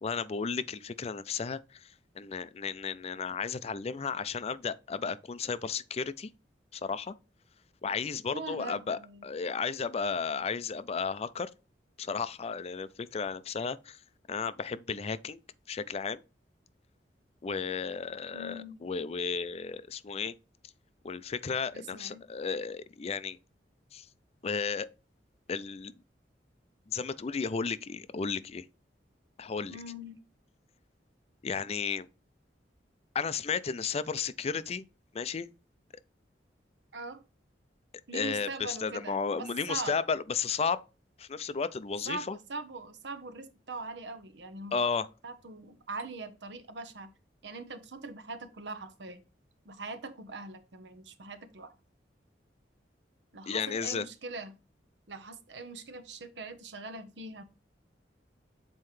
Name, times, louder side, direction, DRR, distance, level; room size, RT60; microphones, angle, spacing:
voice 1, 0.0-6.3 6.7-7.1 7.8-11.5 12.0-14.0 14.3-15.4 15.7-16.2 17.4-20.3 21.0-23.4 23.9-24.1 24.4-24.9 25.5-25.9 26.9-28.7 29.4-29.8 31.4-32.1 33.1-34.8 35.1-35.5 38.1-40.8 41.2-42.4 44.7-45.1 53.5-54.0, left 5 dB, 35° left, 0.4 m, -33 dB
voice 2, 8.3-9.3 18.3-18.9 21.7-22.2 29.7-30.2 36.9-37.2 38.1-40.0 42.1-44.9 45.2-47.1 47.4-49.2 49.6-51.7 53.3-54.6 55.1-57.4, right 3 dB, 85° right, 0.9 m, -42 dB
7.6 x 4.4 x 3.1 m
head